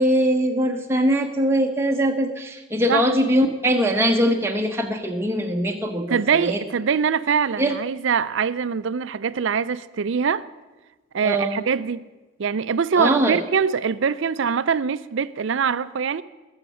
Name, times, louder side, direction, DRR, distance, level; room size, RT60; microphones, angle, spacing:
voice 1, 0.0-6.6 7.6-7.8 11.2-11.7 13.0-13.4, equal, 10° right, 0.9 m, -22 dB
voice 2, 6.1-10.5 11.1-12.0 12.4-16.2, right 6 dB, 60° right, 0.4 m, -23 dB
20.5 x 7.3 x 5.6 m
head